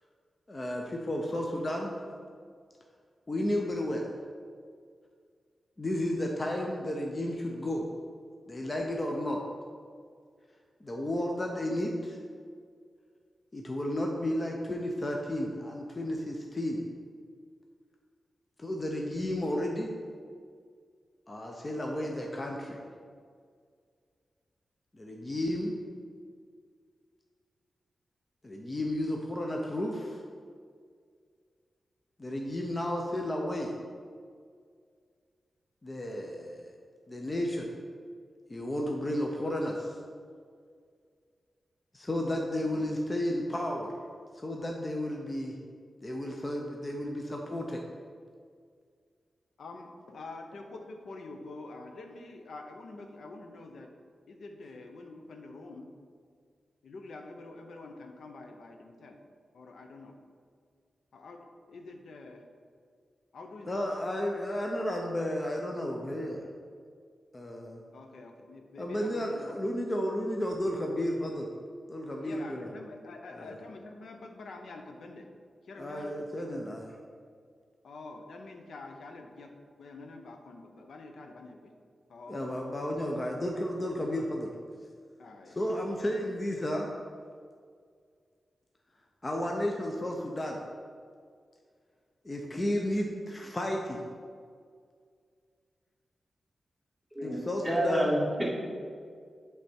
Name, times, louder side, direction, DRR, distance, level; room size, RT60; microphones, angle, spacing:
voice 1, 0.5-1.9 3.3-4.1 5.8-7.9 8.5-9.4 10.8-12.2 13.5-16.9 18.6-19.9 21.3-22.8 24.9-25.7 28.4-30.2 32.2-33.7 35.8-36.7 37.1-37.8 38.5-40.0 41.9-43.9 44.3-45.5 46.0-47.8 63.6-66.4 67.3-67.8 68.8-71.5 71.9-72.7 73.3-73.6 75.7-76.9 82.3-84.5 85.5-86.9 89.2-90.6 92.2-94.0 97.2-98.1, left 1 dB, 25° left, 0 dB, 0.5 m, -32 dB
voice 2, 49.6-53.9 54.3-55.9 56.8-59.2 59.5-60.1 61.1-62.4 63.3-63.7 67.9-69.6 72.2-75.3 75.7-76.1 77.8-79.5 79.8-81.6 82.1-82.4 85.2-85.5, left 3 dB, 75° left, 4 dB, 0.6 m, -46 dB
voice 3, 97.6-98.6, equal, 5° left, -6 dB, 1.7 m, -28 dB
7.9 x 3.4 x 4.3 m, 2.1 s
wide cardioid pair, 115°, 0 cm